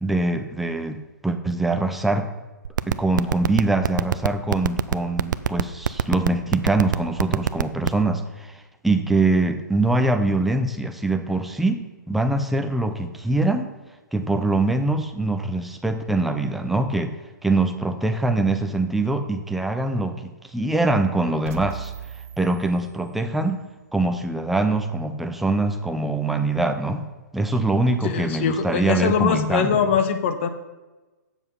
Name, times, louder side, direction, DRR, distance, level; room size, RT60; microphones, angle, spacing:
voice 1, 0.0-2.3 2.9-13.7 14.1-17.1 17.4-21.9 22.4-23.6 23.9-27.1 27.3-29.9, right 2 dB, ahead, 6 dB, 0.4 m, -23 dB
sound 1, 2.7-8.0, right 8 dB, 75° right, 0.5 m, -20 dB
sound 2, 21.4-23.5, right 8 dB, 45° right, 0.9 m, -38 dB
voice 2, 28.0-30.5, left 7 dB, 40° left, 9 dB, 0.9 m, -22 dB
7.9 x 7.2 x 5.5 m, 1.2 s
hypercardioid pair, 155°, 10 cm